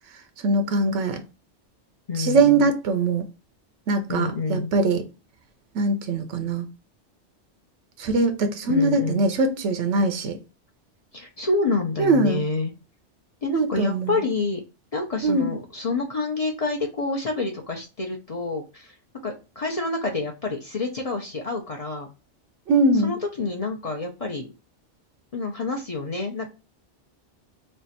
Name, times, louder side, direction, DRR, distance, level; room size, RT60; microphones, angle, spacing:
voice 1, 0.4-1.2 2.2-3.2 3.9-5.0 5.7-6.7 8.0-10.4 12.0-12.4 13.5-14.2 15.2-15.5 22.7-23.1, right 3 dB, 90° right, 1.0 m, -22 dB
voice 2, 2.1-2.7 4.1-4.7 8.7-9.2 11.1-12.7 13.4-14.6 14.9-18.9 19.2-22.1 23.0-24.5 25.3-26.5, left 3 dB, 40° left, 0.6 m, -28 dB
3.3 x 2.4 x 4.0 m
omnidirectional pair, 1.2 m